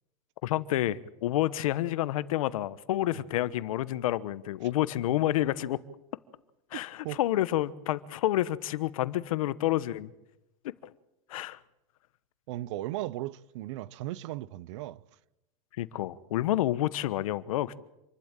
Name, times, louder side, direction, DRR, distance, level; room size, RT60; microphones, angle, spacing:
voice 1, 0.4-5.8 6.7-10.1 10.6-10.7 11.3-11.6 15.8-17.8, left 14 dB, 80° left, 1.1 m, -29 dB
voice 2, 6.7-7.2 12.5-15.0, right 15 dB, 60° right, 0.8 m, -37 dB
27.0 x 12.0 x 9.0 m
supercardioid pair, 165°, 17 cm